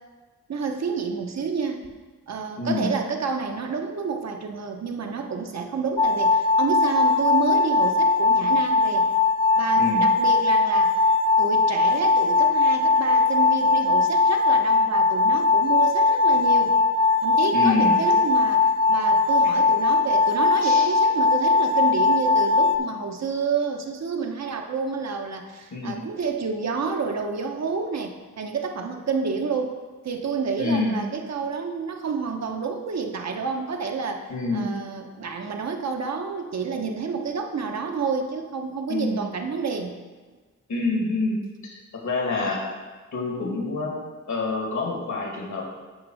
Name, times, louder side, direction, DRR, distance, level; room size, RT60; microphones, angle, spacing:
voice 1, 0.5-1.8 2.3-9.1 9.6-11.0 11.4-16.7 17.2-40.0, right 5 dB, 60° right, 4 dB, 0.9 m, -29 dB
voice 2, 2.6-2.9 9.8-10.1 17.5-18.0 20.6-20.9 25.7-26.0 30.6-31.1 34.3-34.7 38.9-39.2 40.7-42.6 43.1-43.9 44.3-45.6, left 3 dB, 70° left, -2 dB, 2.1 m, -27 dB
sound 1, 6.0-22.8, left 3 dB, 20° left, 0.4 m, -20 dB
9.5 x 3.6 x 6.3 m, 1.4 s
wide cardioid pair, 130°, 30 cm